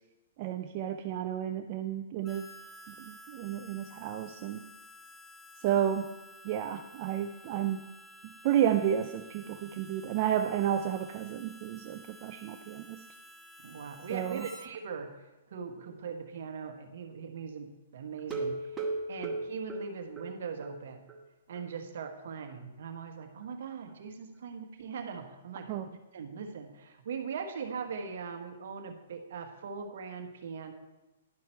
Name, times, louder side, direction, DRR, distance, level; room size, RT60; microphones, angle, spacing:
voice 1, 0.4-2.4 2.9-4.6 5.6-6.1 6.4-7.8 8.2-13.0 14.1-14.5 25.7-25.9, right 10 dB, 40° right, 6 dB, 0.4 m, -31 dB
Harmonica, 2.2-14.7, equal, 15° left, 0.7 m, -52 dB
voice 2, 13.6-15.1 15.5-18.7 19.1-21.1 21.5-25.8 26.1-30.7, right 6 dB, 65° right, 5 dB, 1.2 m, -40 dB
sound 1, 18.2-20.8 21.1-21.2 21.6-21.7 22.0-22.1, right 3 dB, 15° right, 1.0 m, -36 dB
11.0 x 5.8 x 4.4 m, 1.1 s
hypercardioid pair, 140°, 0 cm